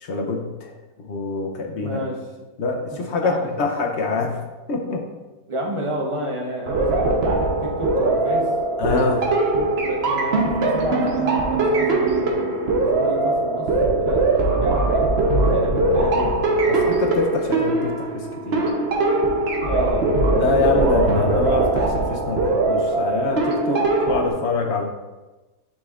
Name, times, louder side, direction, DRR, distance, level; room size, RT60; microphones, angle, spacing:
voice 1, 0.0-0.7 1.0-2.0 2.6-4.4 4.7-5.0 8.8-9.3 16.7-18.7 20.3-24.8, left 3 dB, 60° left, 2 dB, 0.8 m, -25 dB
voice 2, 1.7-2.2 2.8-3.5 5.5-8.4 9.5-13.7 13.9-16.4 19.6-20.1, right 1 dB, 25° right, -1 dB, 0.7 m, -31 dB
sound 1, 6.7-24.3, right 2 dB, 50° right, 0.9 m, -21 dB
9.7 x 4.1 x 2.4 m, 1.1 s
omnidirectional pair, 1.7 m